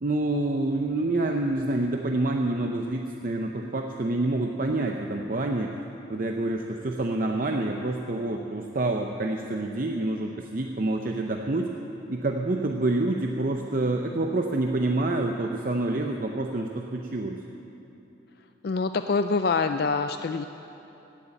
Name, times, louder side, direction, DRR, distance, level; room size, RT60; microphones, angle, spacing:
voice 1, 0.0-5.7 6.1-11.7 12.1-17.4, right 2 dB, 45° right, 2 dB, 0.6 m, -27 dB
voice 2, 18.6-20.5, left 4 dB, 55° left, 8 dB, 0.4 m, -25 dB
16.0 x 8.2 x 8.8 m, 3.0 s
head